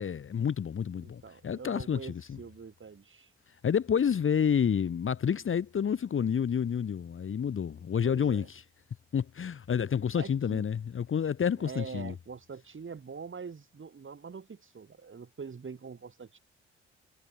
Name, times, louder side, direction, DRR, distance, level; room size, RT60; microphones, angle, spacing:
voice 1, 0.0-2.4 3.6-8.6 9.1-12.1, left 7 dB, 40° left, 1.2 m, -29 dB
voice 2, 1.0-3.3 8.0-8.5 10.1-10.6 11.6-16.4, right 5 dB, 40° right, 3.4 m, -44 dB
hypercardioid pair, 40°, 32 cm